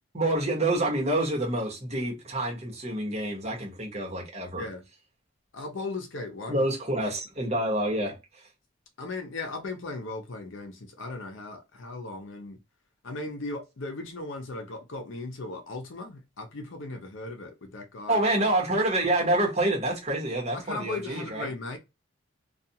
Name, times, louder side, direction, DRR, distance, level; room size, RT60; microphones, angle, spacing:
voice 1, 0.1-4.7 6.5-8.2 18.1-21.5, right 1 dB, 30° right, 1.0 m, -27 dB
voice 2, 5.5-6.6 9.0-12.6 13.0-18.2 20.5-21.8, left 2 dB, 70° left, 0.6 m, -37 dB
2.4 x 2.3 x 2.7 m
head